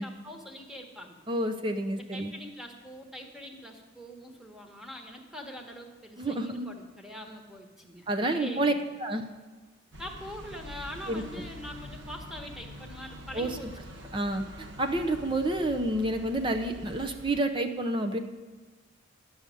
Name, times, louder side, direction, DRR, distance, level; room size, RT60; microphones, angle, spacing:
voice 1, 0.0-1.2 2.0-8.1 8.3-8.8 10.0-13.7, equal, ahead, 2 dB, 1.3 m, -43 dB
voice 2, 1.3-2.3 6.2-6.7 8.1-8.7 9.0-9.2 11.1-11.5 13.3-13.6 14.1-18.2, right 1 dB, 25° right, 6 dB, 0.6 m, -29 dB
sound 1, 9.9-17.4, left 1 dB, 60° right, 1.2 m, -45 dB
11.5 x 6.3 x 9.1 m, 1.4 s
head